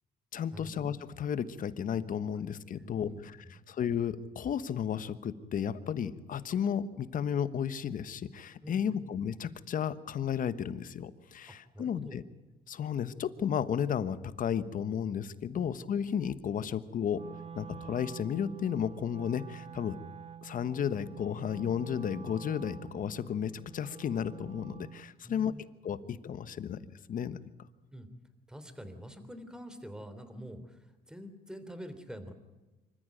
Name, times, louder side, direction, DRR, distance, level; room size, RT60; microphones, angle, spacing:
voice 1, 0.3-3.1 3.7-12.2 12.7-17.2 17.5-20.0 20.4-25.5 25.8-26.8 27.1-27.4, left 8 dB, 55° left, 14 dB, 1.3 m, -33 dB
voice 2, 2.8-3.5 8.6-9.0 11.5-12.2 15.6-15.7 25.2-25.6 27.9-28.1 28.5-32.3, equal, 5° right, 10 dB, 3.3 m, -46 dB
Wind instrument woodwind instrument, 17.1-25.1, right 7 dB, 35° right, 0.8 m, -47 dB
25.5 x 14.5 x 9.2 m, 1.2 s
cardioid pair, 90°, 17 cm